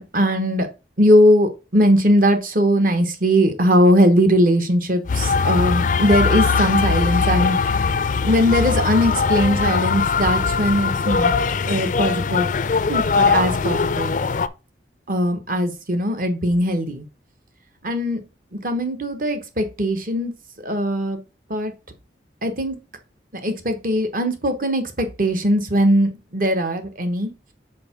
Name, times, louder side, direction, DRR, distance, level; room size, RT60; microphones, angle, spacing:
voice 1, 0.1-0.7 1.0-7.6 8.2-11.3 11.7-12.5 12.9-14.1 15.1-17.1 17.8-18.2 18.6-20.3 20.6-21.2 21.5-21.7 22.4-22.8 23.4-27.3, equal, 45° right, 7 dB, 1.1 m, -19 dB
sound 1, 5.1-14.5, left 5 dB, 45° left, 0.4 m, -21 dB
5.2 x 4.5 x 5.7 m, 0.30 s
head